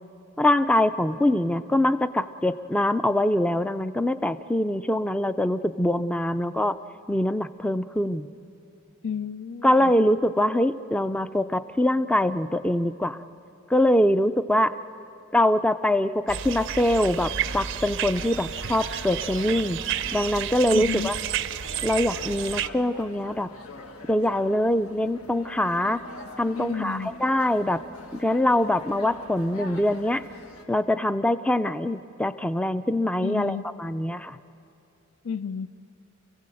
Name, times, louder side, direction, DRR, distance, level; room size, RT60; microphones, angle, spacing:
voice 1, 0.4-6.8 7.1-8.3 9.6-13.2 13.7-14.7 15.3-19.8 20.1-21.1 21.8-23.5 24.1-26.0 26.4-27.8 28.1-30.2 30.7-34.4, left 1 dB, 5° left, 11 dB, 0.4 m, -23 dB
voice 2, 9.0-9.9 20.7-21.1 26.6-27.1 33.2-33.7 35.2-35.7, left 6 dB, 65° left, 15 dB, 0.6 m, -31 dB
sound 1, 16.3-22.7, right 9 dB, 60° right, 0.6 m, -31 dB
sound 2, 16.8-30.6, left 2 dB, 80° left, 1.8 m, -43 dB
29.5 x 16.5 x 7.7 m, 2.7 s
head